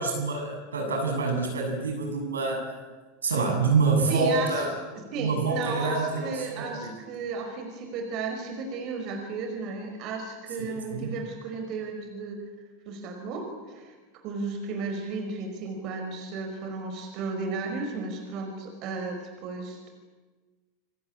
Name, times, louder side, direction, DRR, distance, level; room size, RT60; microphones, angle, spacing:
voice 1, 0.0-2.7 3.2-4.7 5.2-6.9 10.6-11.1, right 4 dB, 80° right, 3 dB, 7.6 m, -27 dB
voice 2, 4.1-4.7 5.0-12.4 12.9-14.0 14.2-19.9, right 4 dB, 45° right, 5 dB, 5.3 m, -34 dB
28.5 x 23.5 x 8.7 m, 1.3 s
figure-of-eight pair, 85°, 0 cm